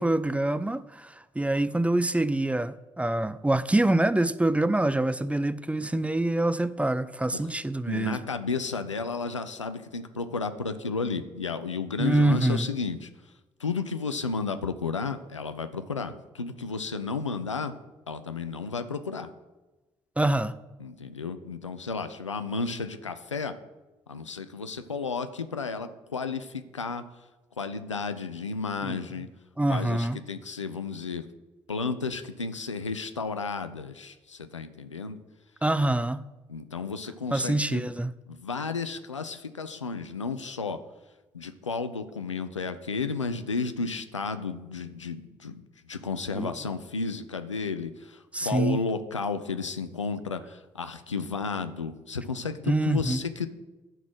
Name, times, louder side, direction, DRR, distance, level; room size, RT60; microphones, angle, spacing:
voice 1, 0.0-8.2 12.0-12.7 20.2-20.6 28.8-29.0 29.6-30.2 35.6-36.3 37.3-38.1 46.3-46.5 48.3-48.8 52.7-53.2, right 1 dB, 10° right, 13 dB, 0.5 m, -25 dB
voice 2, 7.9-13.1 13.6-17.7 18.1-19.3 20.8-23.5 24.1-27.0 27.6-29.3 29.7-31.2 31.7-35.2 36.5-37.8 38.3-40.8 41.3-45.6 45.9-53.5, left 4 dB, 90° left, 10 dB, 0.4 m, -33 dB
11.0 x 4.0 x 6.1 m, 1.1 s
figure-of-eight pair, 40°, 15 cm